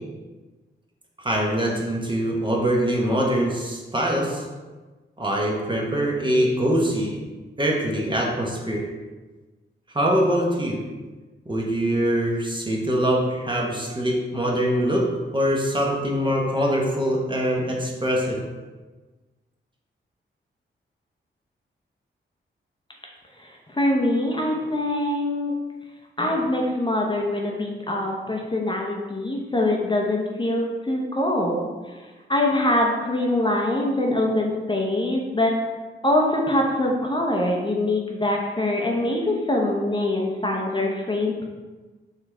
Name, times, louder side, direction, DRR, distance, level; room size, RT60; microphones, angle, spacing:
voice 1, 1.2-4.5 5.2-7.2 7.6-8.9 9.9-10.8 11.5-15.1 15.3-18.4, equal, 20° right, -1 dB, 1.0 m, -23 dB
voice 2, 23.4-25.5 26.2-31.7 32.3-35.6 36.0-41.4, left 1 dB, 20° left, -1 dB, 0.8 m, -23 dB
4.1 x 3.1 x 3.4 m, 1.3 s
cardioid pair, 45°, 21 cm